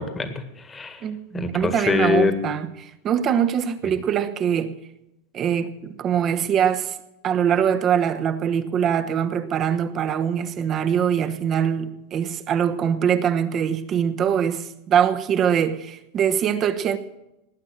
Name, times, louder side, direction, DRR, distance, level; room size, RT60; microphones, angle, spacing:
voice 1, 0.0-1.0 1.3-2.4, left 4 dB, 15° left, 1.7 m, -24 dB
voice 2, 1.0-4.8 5.3-7.0 7.2-17.0, right 8 dB, 30° right, 1.1 m, -23 dB
19.0 x 9.7 x 6.5 m
supercardioid pair, 135°, 0 cm